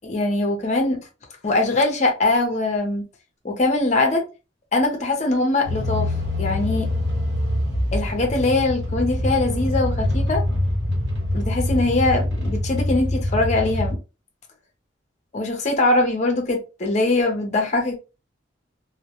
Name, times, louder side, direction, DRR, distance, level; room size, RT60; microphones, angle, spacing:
voice 1, 0.0-1.0 1.4-3.0 3.4-4.2 4.7-6.1 6.4-6.9 7.9-10.4 11.3-14.0 15.3-18.0, left 2 dB, 40° left, 0.6 m, -22 dB
sound 1, 5.6-13.9, left 1 dB, 70° right, 0.9 m, -24 dB
2.1 x 2.1 x 2.8 m
head